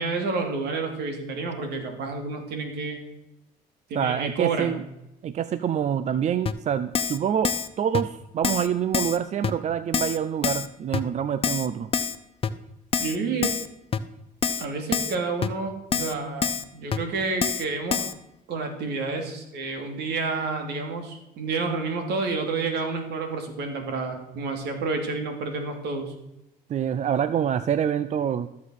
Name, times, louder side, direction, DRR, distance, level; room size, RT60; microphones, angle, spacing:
voice 1, 0.0-3.0 3.9-4.8 13.0-13.6 14.6-18.0 18.5-26.1, right 4 dB, 75° right, 5 dB, 2.8 m, -29 dB
voice 2, 3.9-4.8 5.2-11.9 26.7-28.5, right 9 dB, 45° right, 13 dB, 0.5 m, -26 dB
Keyboard (musical), 6.5-6.6 6.9-7.2 7.4-7.7 7.9-8.0 8.4-8.7 8.9-9.2 9.4-9.5 9.9-10.2 10.4-10.7 10.9-11.0 11.4-11.7 11.9-12.2 12.4-12.5 12.9-13.2 13.4-13.7 13.9-14.0 14.4-14.7 14.9-15.2 15.4-15.5 15.9-16.1 16.4-16.6 16.9-17.0 17.4-17.6 17.9-18.1, left 6 dB, 35° left, 0.8 m, -26 dB
13.5 x 7.3 x 6.5 m, 0.87 s
cardioid pair, 110°, 17 cm